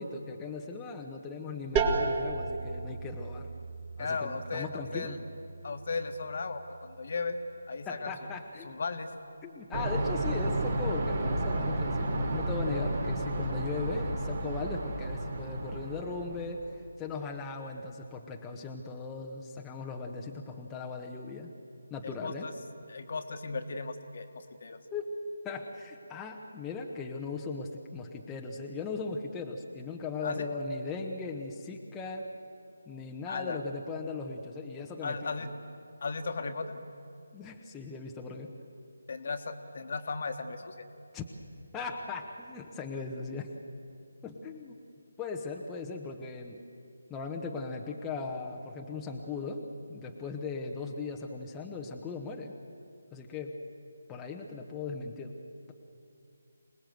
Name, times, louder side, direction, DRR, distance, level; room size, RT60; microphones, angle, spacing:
voice 1, 0.0-3.5 4.0-5.2 7.9-8.7 9.4-16.6 17.0-21.5 21.9-22.5 24.9-25.1 25.4-32.3 32.9-35.5 37.3-38.5 41.1-41.2 41.7-43.5 44.2-44.7 45.2-46.6 47.1-52.6 53.1-53.6 54.1-55.3, left 4 dB, 10° left, 0 dB, 1.1 m, -38 dB
sound 1, 1.8-7.3, right 4 dB, 20° right, 2.0 m, -35 dB
voice 2, 4.0-5.2 5.6-7.4 7.7-8.1 8.6-9.1 22.0-22.5 22.9-24.8 30.2-30.5 33.3-33.6 35.0-35.5 36.0-36.8 39.1-40.9, left 4 dB, 50° left, 7 dB, 1.6 m, -36 dB
sound 2, 9.7-16.5, right 1 dB, 50° right, 3.8 m, -32 dB
26.0 x 19.0 x 7.8 m, 2.6 s
figure-of-eight pair, 155°, 0 cm